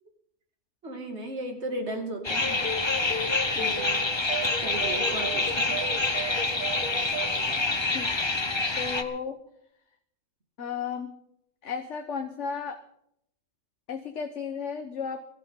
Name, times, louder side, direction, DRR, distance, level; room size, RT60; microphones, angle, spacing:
voice 1, 0.8-2.6 3.5-4.1 4.6-5.7, right 1 dB, 60° right, 3 dB, 2.8 m, -36 dB
sound 1, 2.2-9.0, left 3 dB, 25° left, 1.1 m, -27 dB
sound 2, 2.4-7.4, right 1 dB, 45° left, 3.0 m, -35 dB
voice 2, 7.9-8.3 8.7-9.4 10.6-11.2 11.6-12.8 13.9-15.3, left 6 dB, 70° left, 5 dB, 1.4 m, -34 dB
22.5 x 14.5 x 3.8 m, 0.71 s
omnidirectional pair, 1.3 m